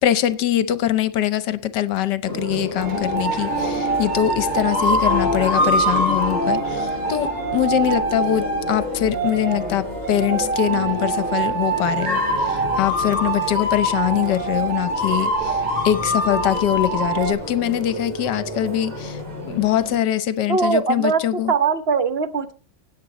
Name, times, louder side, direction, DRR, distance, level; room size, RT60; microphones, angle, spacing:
voice 1, 0.0-21.5, left 11 dB, 65° left, 1.2 m, -23 dB
sound 1, 2.3-20.0, left 1 dB, 20° right, 3.0 m, -31 dB
sound 2, 2.8-17.3, right 1 dB, 85° right, 6.5 m, -24 dB
voice 2, 20.5-22.5, right 5 dB, 50° right, 0.7 m, -21 dB
17.5 x 8.4 x 4.1 m
omnidirectional pair, 2.3 m